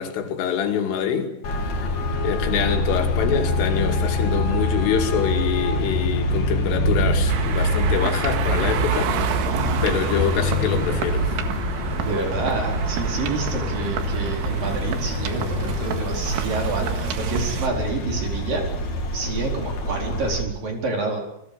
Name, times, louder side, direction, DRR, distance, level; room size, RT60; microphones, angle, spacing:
voice 1, 0.0-1.4 1.7-1.8 2.2-11.4, left 8 dB, 85° left, 5.1 m, -25 dB
Traffic noise roadway noise, 1.4-20.4, left 1 dB, 40° left, 3.7 m, -25 dB
sound 1, 7.3-17.7, right 9 dB, 80° right, 4.1 m, -29 dB
voice 2, 12.0-18.6 19.1-21.2, right 3 dB, 45° right, 5.8 m, -28 dB
29.5 x 21.5 x 6.9 m
omnidirectional pair, 5.6 m